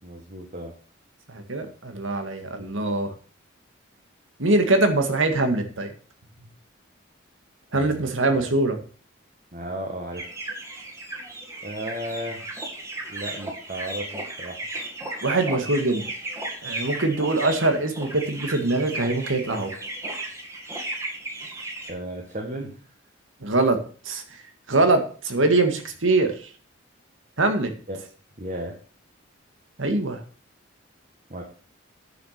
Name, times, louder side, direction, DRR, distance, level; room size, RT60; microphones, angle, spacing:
voice 1, 0.0-0.7 7.7-8.4 9.5-10.3 11.6-12.4 13.1-14.6 21.8-22.8 27.9-28.0 28.4-28.7 31.3-31.4, right 1 dB, 40° right, 1 dB, 1.7 m, -34 dB
voice 2, 1.3-3.1 4.4-5.9 7.7-8.8 15.2-16.0 16.6-19.7 23.4-23.8 24.1-24.2 24.7-26.3 27.4-27.7 29.8-30.2, right 2 dB, 85° right, 6 dB, 1.9 m, -23 dB
sound 1, 10.1-21.9, right 2 dB, 15° right, 2.0 m, -35 dB
10.0 x 6.1 x 6.6 m, 0.41 s
head